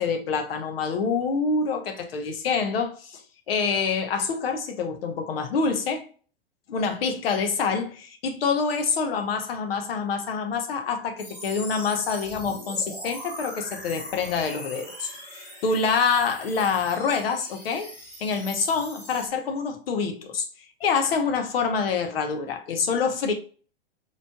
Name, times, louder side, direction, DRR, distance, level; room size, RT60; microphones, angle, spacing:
voice 1, 0.0-3.2 3.5-6.0 6.7-17.9 18.2-20.4 20.8-23.3, left 5 dB, 65° left, 0.9 m, -26 dB
sound 1, 11.2-19.3, equal, 10° left, 1.6 m, -41 dB
4.1 x 3.2 x 2.2 m
figure-of-eight pair, 105°, 31 cm